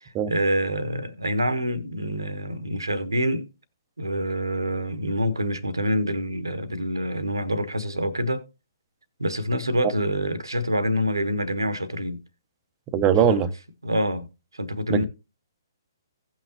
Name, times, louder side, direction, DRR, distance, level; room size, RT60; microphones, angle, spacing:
voice 1, 0.0-3.5 4.0-8.4 9.2-12.2 13.3-13.4 13.8-14.3 14.5-15.0, equal, 75° right, 1.2 m, -26 dB
voice 2, 12.9-13.5 14.9-15.0, right 8 dB, 20° right, 0.9 m, -20 dB
17.0 x 5.9 x 2.8 m
figure-of-eight pair, 130°, 2 cm